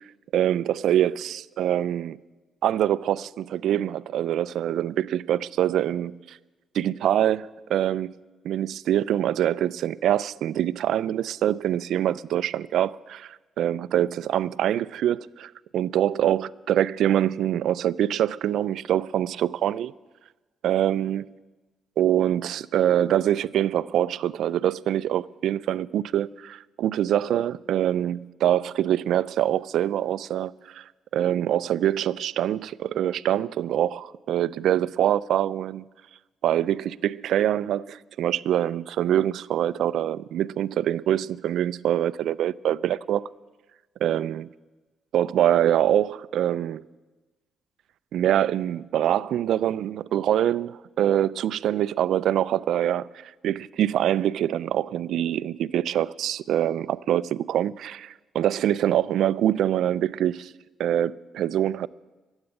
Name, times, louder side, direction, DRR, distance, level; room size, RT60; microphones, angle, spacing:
voice 1, 0.3-2.2 2.6-6.4 6.7-8.2 8.4-19.9 20.6-21.2 22.0-30.8 31.1-35.8 36.4-43.2 44.0-44.4 45.1-46.8 48.1-60.5 60.8-61.9, right 11 dB, 75° right, 0.3 m, -24 dB
13.0 x 8.1 x 9.7 m
cardioid pair, 90°, 0 cm